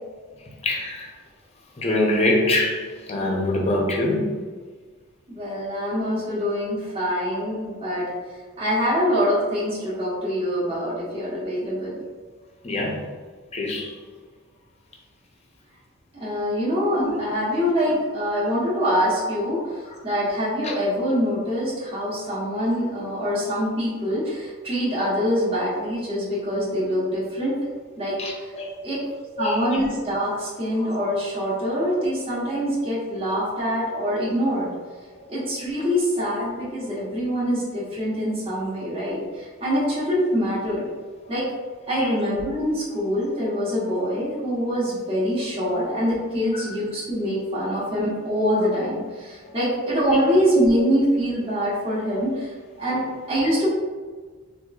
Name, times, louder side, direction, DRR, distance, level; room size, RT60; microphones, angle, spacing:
voice 1, 0.6-1.1 1.8-4.4 12.6-13.0 13.5-13.9 17.0-17.1 20.6-20.7 28.2-28.7 29.4-29.8 30.8-30.9 35.8-35.9 41.9-42.1 45.6-45.7 46.5-46.7 49.4-49.5 50.8-50.9 53.4-53.5, left 1 dB, 30° left, -1 dB, 0.6 m, -25 dB
voice 2, 5.3-8.1 8.6-12.0 16.2-27.5 28.0-28.5 28.8-28.9 29.4-34.7 35.3-40.9 41.3-41.4 41.9-52.5 52.8-53.0 53.3-53.7, equal, 25° right, -9 dB, 1.1 m, -24 dB
4.4 x 2.5 x 2.3 m, 1.5 s
head